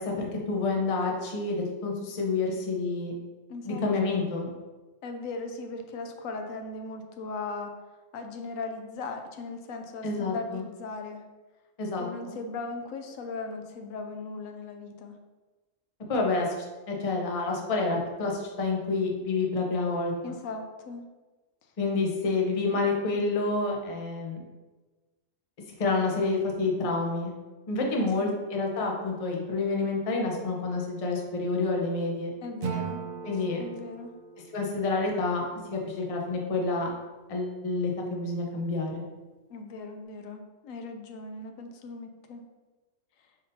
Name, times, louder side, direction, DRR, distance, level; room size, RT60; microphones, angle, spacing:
voice 1, 0.0-3.1 3.7-4.5 10.0-10.6 11.8-12.4 16.1-16.5 16.9-20.3 21.8-24.4 25.8-27.3 27.7-32.3 33.2-33.6 34.5-36.9 37.3-39.0, left 3 dB, 35° left, 0 dB, 0.6 m, -28 dB
voice 2, 3.5-3.8 5.0-7.7 8.1-11.2 12.0-15.2 20.2-21.1 28.0-28.3 32.4-33.0 33.6-34.1 39.5-42.4, left 3 dB, 85° left, 5 dB, 1.0 m, -38 dB
Acoustic guitar / Strum, 32.6-35.8, right 7 dB, 65° right, 0.4 m, -39 dB
5.2 x 3.8 x 2.7 m, 1.2 s
omnidirectional pair, 1.4 m